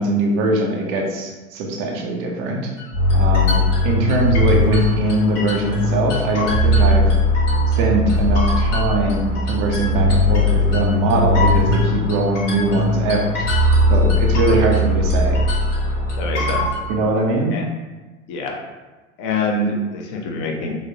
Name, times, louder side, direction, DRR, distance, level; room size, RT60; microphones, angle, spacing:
voice 1, 0.0-2.7 3.1-7.1 7.7-13.2 13.9-15.4 16.9-17.6, right 2 dB, 25° right, 1 dB, 0.3 m, -21 dB
sound 1, 2.8-5.8 6.1-7.8 8.1-14.9 15.1-16.8, left 3 dB, 60° left, 1.1 m, -29 dB
sound 2, 2.9-17.0, left 1 dB, 75° left, 1.4 m, -19 dB
voice 2, 16.2-16.7 17.5-17.6 18.3-18.6 19.2-20.8, left 2 dB, 45° left, 1 dB, 0.6 m, -25 dB
3.6 x 2.0 x 2.6 m, 1.2 s
figure-of-eight pair, 85°, 41 cm